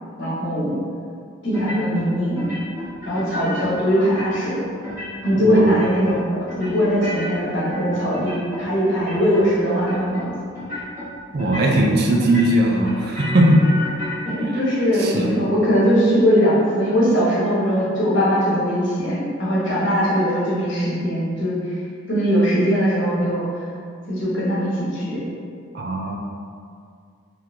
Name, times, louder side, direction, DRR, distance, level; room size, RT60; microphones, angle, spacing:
voice 1, 0.2-0.8 1.4-2.5 3.0-4.6 5.2-10.3 14.2-21.8 22.1-23.6 24.1-25.2, equal, 60° left, -8 dB, 1.3 m, -20 dB
sound 1, 1.5-2.1 2.4-3.7 4.0-4.5 4.8-5.4 5.6-6.2 6.5-8.7 8.9-9.5 9.7-10.2 10.5-11.1 11.4-11.9 12.2-14.3, left 1 dB, 15° right, 1.4 m, -32 dB
voice 2, 5.3-5.7 11.3-13.6 15.0-15.3 25.7-26.2, right 1 dB, 50° right, 0 dB, 0.4 m, -19 dB
3.9 x 3.1 x 2.8 m, 2.2 s
head